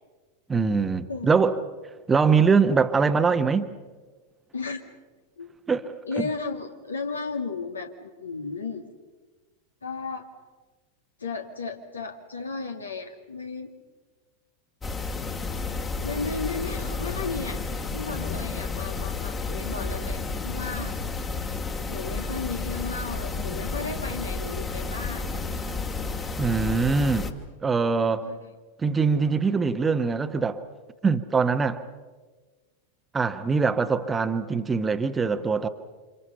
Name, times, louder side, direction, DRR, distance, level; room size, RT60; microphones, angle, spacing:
voice 1, 0.5-1.5 2.1-3.7 5.7-6.3 26.4-27.3 27.6-28.3 28.8-30.6 31.0-31.8 33.1-35.7, right 5 dB, 15° right, 10 dB, 1.2 m, -23 dB
voice 2, 6.0-8.9 9.8-10.3 11.2-13.7 16.0-17.6 17.9-20.9 21.9-25.3 28.2-28.5, left 4 dB, 75° left, 5 dB, 2.3 m, -34 dB
sound 1, 14.8-27.3, left 3 dB, 20° left, 1.9 m, -31 dB
29.0 x 27.0 x 5.7 m, 1.3 s
figure-of-eight pair, 90°, 0 cm